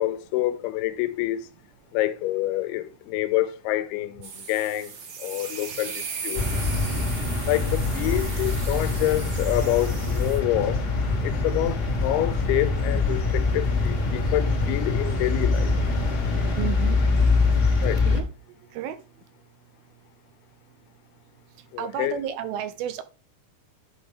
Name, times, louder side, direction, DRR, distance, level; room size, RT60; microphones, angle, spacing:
voice 1, 0.0-1.5 1.9-4.9 5.2-6.5 7.5-10.8 11.2-15.7 17.8-18.0 21.7-22.2, left 15 dB, 85° left, 2.5 m, -27 dB
sound 1, 4.2-10.4, right 6 dB, 65° right, 1.6 m, -37 dB
sound 2, 6.3-18.2, left 3 dB, 55° left, 1.1 m, -24 dB
voice 2, 16.6-17.0 18.0-18.3 18.7-19.0 21.8-23.0, right 10 dB, 80° right, 2.3 m, -31 dB
11.0 x 4.5 x 3.4 m
omnidirectional pair, 4.6 m